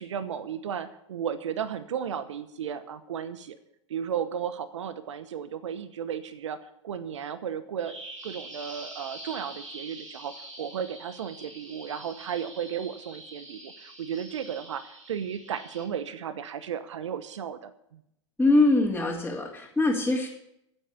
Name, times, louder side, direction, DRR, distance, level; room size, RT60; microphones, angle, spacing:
voice 1, 0.0-3.6 3.9-8.0 8.2-18.0, right 8 dB, 75° right, 13 dB, 1.0 m, -34 dB
Bird vocalization bird call bird song, 7.8-15.8, right 1 dB, 90° right, 6.8 m, -45 dB
voice 2, 18.4-20.3, left 2 dB, 5° left, -5 dB, 3.0 m, -23 dB
14.5 x 8.1 x 8.3 m, 0.78 s
hypercardioid pair, 95°, 16 cm